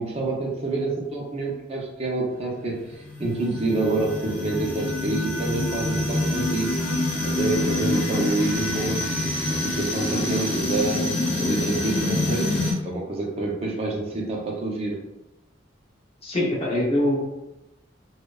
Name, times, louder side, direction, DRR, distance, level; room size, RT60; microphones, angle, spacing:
voice 1, 0.0-2.8 3.2-6.7 7.2-9.0 9.5-11.1 11.4-12.5 12.8-15.0, right 2 dB, 30° right, -1 dB, 0.4 m, -27 dB
sound 1, 2.9-12.7, left 2 dB, 65° left, 0.8 m, -26 dB
voice 2, 16.2-17.3, left 1 dB, 30° left, -4 dB, 0.5 m, -23 dB
2.6 x 2.1 x 2.2 m, 0.94 s
head